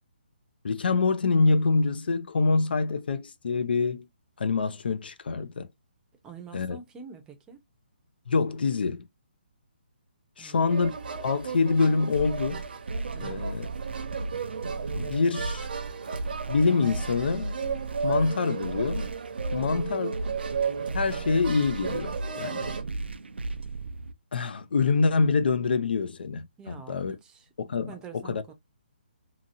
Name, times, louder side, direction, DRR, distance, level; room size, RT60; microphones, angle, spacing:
voice 1, 0.6-4.1 4.4-5.7 6.5-6.8 8.3-9.1 10.4-10.9 11.2-12.6 13.2-13.7 15.0-15.7 16.5-17.6 18.0-19.1 19.5-20.1 20.9-22.7 24.3-27.2 27.6-28.4, left 4 dB, 65° left, 0.4 m, -26 dB
voice 2, 6.2-7.6 10.4-10.7 13.1-13.4 19.6-20.1 26.6-27.5 27.8-28.5, right 6 dB, 10° right, 0.6 m, -46 dB
sound 1, 10.7-22.8, right 5 dB, 60° right, 0.8 m, -35 dB
sound 2, 12.1-24.1, right 3 dB, 90° right, 0.4 m, -36 dB
2.8 x 2.7 x 2.5 m
hypercardioid pair, 150°, 6 cm